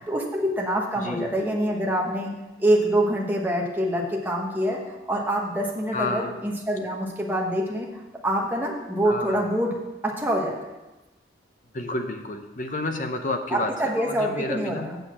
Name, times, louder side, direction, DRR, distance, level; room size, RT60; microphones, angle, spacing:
voice 1, 0.1-2.3 2.6-4.8 5.1-7.9 8.2-9.7 10.0-10.6 13.5-15.0, right 1 dB, 10° right, -2 dB, 1.2 m, -25 dB
voice 2, 1.0-1.3 5.9-6.4 9.0-9.4 11.7-13.7 14.0-14.9, left 2 dB, 45° left, 6 dB, 0.8 m, -30 dB
7.8 x 6.6 x 6.0 m, 1.1 s
head